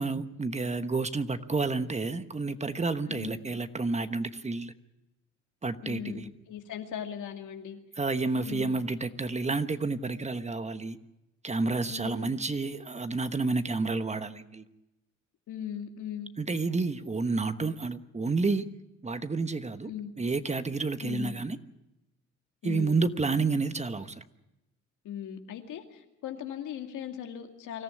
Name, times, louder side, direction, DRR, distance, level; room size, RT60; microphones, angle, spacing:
voice 1, 0.0-4.7 5.6-6.3 8.0-11.0 11.4-14.6 16.4-18.6 19.0-19.9 20.2-21.6 22.6-24.2, right 3 dB, 20° right, 10 dB, 1.1 m, -30 dB
voice 2, 3.1-3.4 5.8-7.8 8.3-8.7 11.9-12.3 15.5-16.3 19.8-20.1 21.0-21.3 22.6-23.0 25.0-27.8, left 9 dB, 80° left, 4 dB, 2.5 m, -38 dB
25.0 x 14.0 x 9.9 m, 0.97 s
cardioid pair, 90°, 30 cm